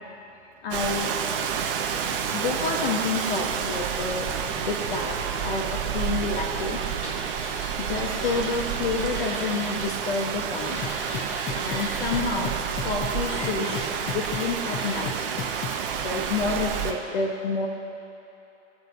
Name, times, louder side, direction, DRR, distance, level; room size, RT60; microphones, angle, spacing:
voice 1, 0.6-1.1 2.3-6.8 7.8-10.8 11.5-12.5 12.8-15.1 16.0-17.7, left 4 dB, 50° left, 0 dB, 1.3 m, -29 dB
Rain, 0.7-16.9, right 7 dB, 50° right, 1.3 m, -29 dB
sound 1, 6.2-9.9 10.1-12.2 12.8-15.1, equal, 80° left, 2.4 m, -39 dB
sound 2, 10.8-15.9, left 7 dB, 25° left, 0.8 m, -33 dB
21.0 x 7.7 x 2.7 m, 3.0 s
figure-of-eight pair, 110°, 36 cm